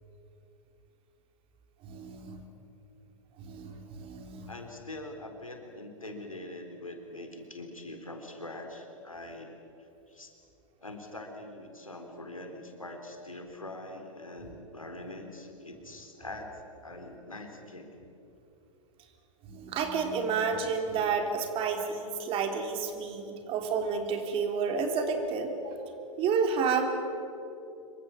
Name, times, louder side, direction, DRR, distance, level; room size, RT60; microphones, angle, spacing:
voice 1, 1.8-2.5 3.4-4.5 19.4-25.8 26.2-26.9, right 5 dB, 35° right, 5 dB, 3.4 m, -30 dB
voice 2, 4.5-10.3 10.8-17.9, left 1 dB, 85° left, 3 dB, 3.8 m, -43 dB
26.0 x 23.5 x 7.2 m, 3.0 s
figure-of-eight pair, 100°, 17 cm